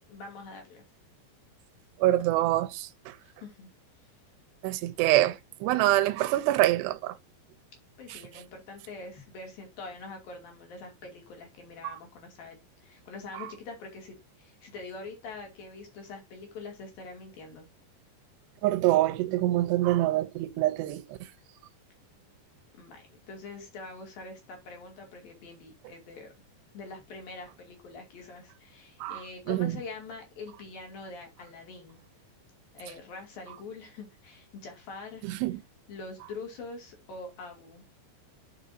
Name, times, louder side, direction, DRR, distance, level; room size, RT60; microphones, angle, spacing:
voice 1, 0.1-0.8 3.2-3.7 4.0-4.1 8.0-17.7 22.8-26.3 26.7-32.0 32.7-35.3 35.9-37.9, left 3 dB, 55° left, 4.2 m, -44 dB
voice 2, 2.0-2.9 4.6-7.1 18.6-21.2 29.0-29.2 29.5-29.7 35.3-35.6, right 16 dB, 80° right, 2.8 m, -25 dB
10.5 x 6.1 x 2.7 m
omnidirectional pair, 5.1 m